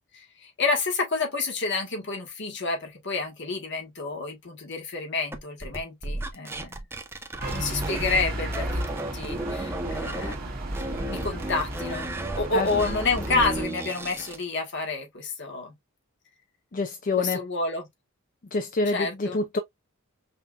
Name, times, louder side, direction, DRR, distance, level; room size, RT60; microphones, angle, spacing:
voice 1, 0.1-6.8 7.5-10.5 11.1-12.1 12.3-15.7 17.2-17.9 18.9-19.4, left 3 dB, 55° left, 1.4 m, -29 dB
sound 1, 5.3-8.3 8.5-10.4 10.7-14.4, right 1 dB, 10° right, 0.6 m, -34 dB
sound 2, 7.4-13.6, right 1 dB, 45° right, 1.5 m, -33 dB
voice 2, 16.7-17.4 18.5-19.6, left 3 dB, 40° left, 0.5 m, -26 dB
5.6 x 2.5 x 2.4 m
head